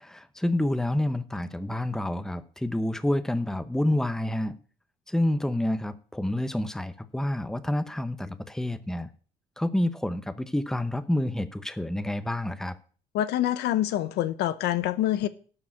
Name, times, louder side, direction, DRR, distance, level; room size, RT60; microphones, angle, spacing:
voice 1, 0.0-4.5 5.1-9.1 9.6-12.8, left 1 dB, 5° left, 0.8 m, -28 dB
voice 2, 13.1-15.3, left 13 dB, 80° left, 0.8 m, -26 dB
12.5 x 4.9 x 8.5 m
cardioid pair, 110°, 17 cm